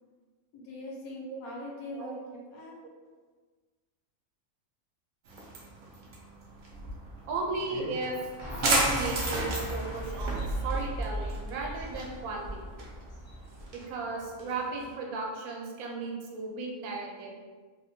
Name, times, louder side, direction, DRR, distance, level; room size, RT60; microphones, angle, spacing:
voice 1, 0.5-2.8, left 1 dB, 85° left, -3 dB, 1.1 m, -41 dB
sound 1, 5.2-14.9, right 2 dB, 70° right, 0.4 m, -35 dB
voice 2, 7.3-8.1 8.6-12.6 13.7-17.3, right 3 dB, 85° right, 0 dB, 1.0 m, -35 dB
sound 2, 8.4-13.7, right 1 dB, 50° left, 0.4 m, -36 dB
2.8 x 2.1 x 2.6 m, 1.4 s
omnidirectional pair, 1.5 m